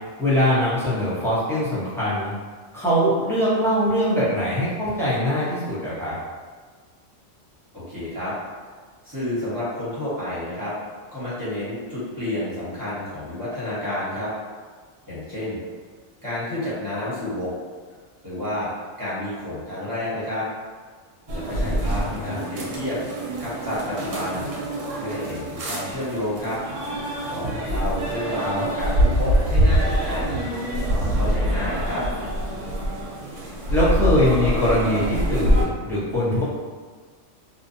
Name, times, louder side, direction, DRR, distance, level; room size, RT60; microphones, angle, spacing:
voice 1, 0.2-2.3 2.7-6.2 21.6-22.4 28.4-28.6 33.7-36.4, equal, 5° left, -11 dB, 0.5 m, -22 dB
voice 2, 7.7-8.3 9.0-10.7 11.1-14.3 15.1-15.6 16.2-17.5 18.2-18.7 19.0-20.4 21.3-23.0 23.4-24.5 24.9-26.6 27.3-30.3 30.7-32.0, left 1 dB, 20° right, -11 dB, 0.9 m, -30 dB
sound 1, 21.3-35.6, equal, 85° right, 1.0 m, -25 dB
2.6 x 2.1 x 2.6 m, 1.5 s
omnidirectional pair, 1.3 m